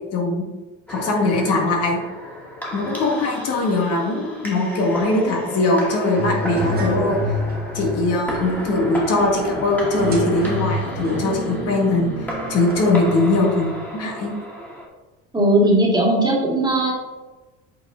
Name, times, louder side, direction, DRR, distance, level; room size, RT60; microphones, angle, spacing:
voice 1, 0.1-0.4 0.9-2.0 2.7-7.2 7.7-12.1 12.5-14.3, left 2 dB, 50° left, 0 dB, 1.9 m, -21 dB
sound 1, 0.9-14.9, equal, 5° left, 2.3 m, -32 dB
sound 2, 6.2-13.8, left 1 dB, 30° right, 2.0 m, -29 dB
voice 2, 15.3-17.0, right 1 dB, 15° right, -3 dB, 2.2 m, -18 dB
8.4 x 4.9 x 3.8 m, 1.2 s
cardioid pair, 125°, 30 cm